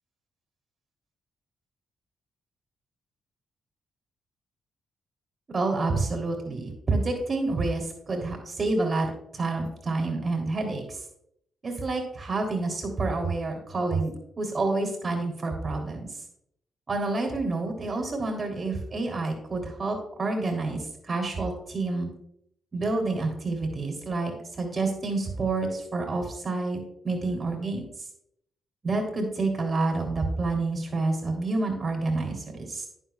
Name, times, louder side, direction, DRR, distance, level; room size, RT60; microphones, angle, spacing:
voice 1, 5.5-11.0 11.6-16.1 16.9-22.1 22.7-26.8 27.0-27.8 28.8-32.9, right 3 dB, 40° right, 2 dB, 3.4 m, -28 dB
10.5 x 9.9 x 2.4 m, 0.73 s
hypercardioid pair, 40°, 0 cm